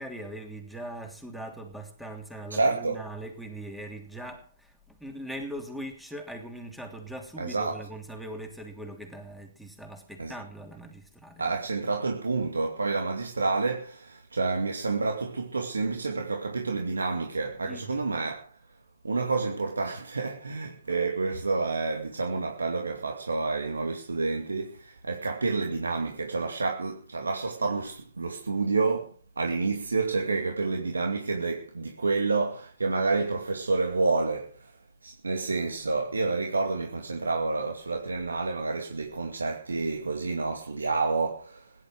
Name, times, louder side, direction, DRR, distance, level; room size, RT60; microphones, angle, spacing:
voice 1, 0.0-11.6 17.6-18.1, right 1 dB, ahead, 3.0 m, -41 dB
voice 2, 2.5-3.0 7.4-7.8 10.2-10.3 11.4-18.5 19.0-34.7 35.0-41.7, right 3 dB, 85° right, 2.4 m, -29 dB
17.0 x 11.0 x 6.4 m
hypercardioid pair, 140°, 0 cm